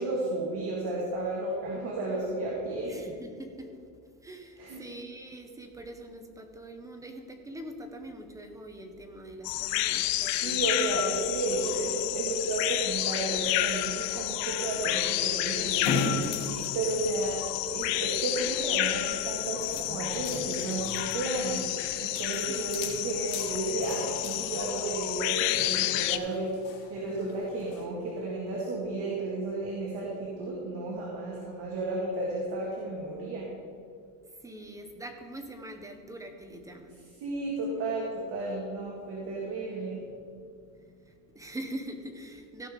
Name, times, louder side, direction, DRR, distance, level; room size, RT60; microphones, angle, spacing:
voice 1, 0.0-3.0 4.6-4.8 10.4-21.7 22.0-26.5 26.9-33.5 37.2-40.1, right 2 dB, 50° right, -4 dB, 2.2 m, -33 dB
voice 2, 2.9-3.7 4.2-10.8 22.5-23.1 34.4-37.0 41.0-42.7, right 1 dB, 5° right, 5 dB, 0.8 m, -43 dB
sound 1, 9.4-26.2, left 16 dB, 60° left, 0.6 m, -30 dB
sound 2, 13.2-27.8, left 3 dB, 85° left, 2.8 m, -40 dB
16.0 x 5.6 x 5.1 m, 2.4 s
cardioid pair, 150°, 48 cm